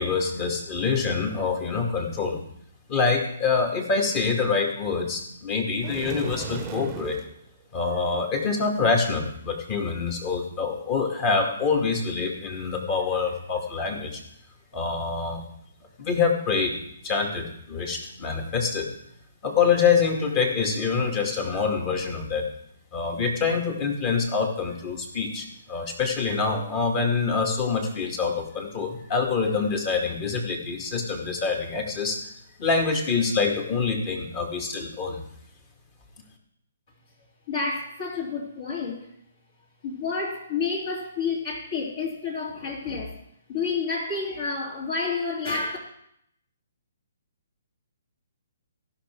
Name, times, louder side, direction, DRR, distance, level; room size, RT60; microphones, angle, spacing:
voice 1, 0.0-2.4 2.9-7.2 7.7-14.2 14.7-15.4 16.0-16.8 17.0-18.9 19.4-22.5 22.9-32.2 32.6-35.2, left 5 dB, 30° left, 2 dB, 2.2 m, -25 dB
sound 1, 5.8-7.3, right 8 dB, 25° right, 0.8 m, -36 dB
voice 2, 37.5-39.1 39.8-43.2 43.5-45.8, left 4 dB, 50° left, -6 dB, 3.0 m, -29 dB
15.5 x 5.8 x 4.7 m, 0.74 s
figure-of-eight pair, 135°, 0 cm